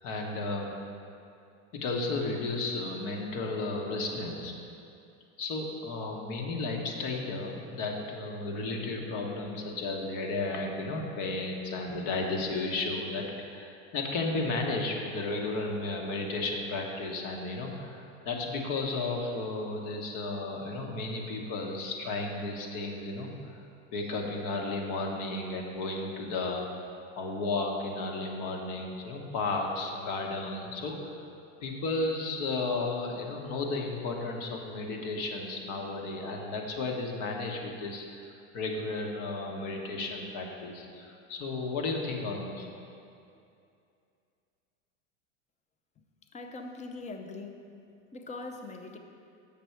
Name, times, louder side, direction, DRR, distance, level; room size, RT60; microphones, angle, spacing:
voice 1, 0.0-0.8 1.7-4.5 5.4-23.5 23.9-31.1 31.6-38.2 38.5-42.7, left 3 dB, 55° left, 1 dB, 1.2 m, -33 dB
voice 2, 46.3-47.7 48.1-49.0, left 3 dB, 20° left, 5 dB, 0.6 m, -41 dB
7.1 x 5.9 x 4.5 m, 2.5 s
supercardioid pair, 115°, 37 cm